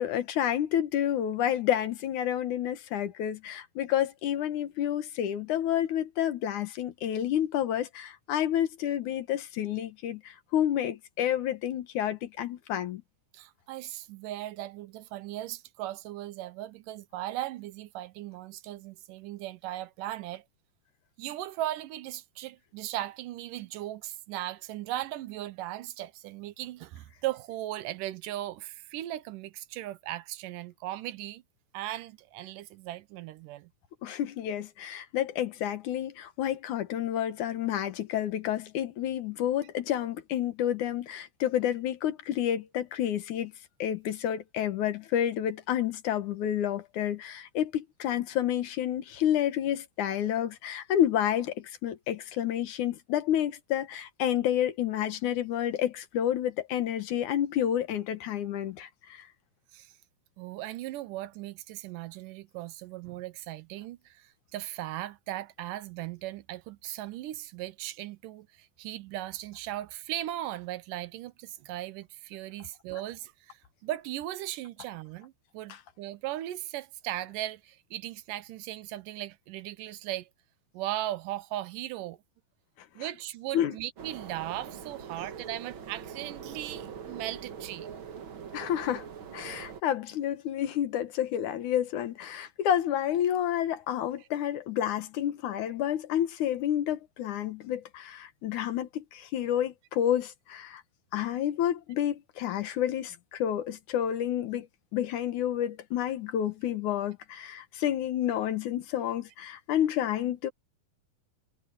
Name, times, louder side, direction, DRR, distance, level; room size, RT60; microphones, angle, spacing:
voice 1, 0.0-13.0 34.0-43.5 43.8-59.3 83.5-83.8 88.5-89.1 89.3-100.8 101.1-104.7 104.9-110.5, left 10 dB, 70° left, 2.6 m, -29 dB
voice 2, 13.3-20.4 21.2-31.4 31.7-33.7 59.7-59.9 60.4-80.3 80.7-82.2 83.0-87.9, right 14 dB, 80° right, 2.4 m, -38 dB
sound 1, 84.0-89.8, right 7 dB, 50° right, 1.8 m, -43 dB
omnidirectional pair, 3.8 m